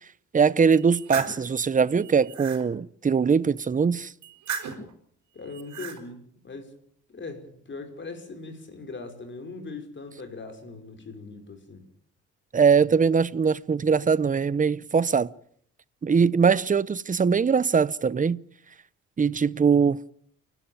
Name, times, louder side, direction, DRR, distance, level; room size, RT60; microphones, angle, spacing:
voice 1, 0.3-4.1 12.5-15.3 16.0-18.4 19.2-20.0, right 6 dB, 25° right, 0.8 m, -21 dB
sound 1, 0.7-1.4 2.0-2.6 4.2-4.9 5.5-6.0, right 7 dB, 70° right, 5.0 m, -35 dB
voice 2, 5.3-6.8 7.1-11.8, left 3 dB, 40° left, 5.5 m, -40 dB
29.0 x 12.0 x 8.9 m
cardioid pair, 90°, 30 cm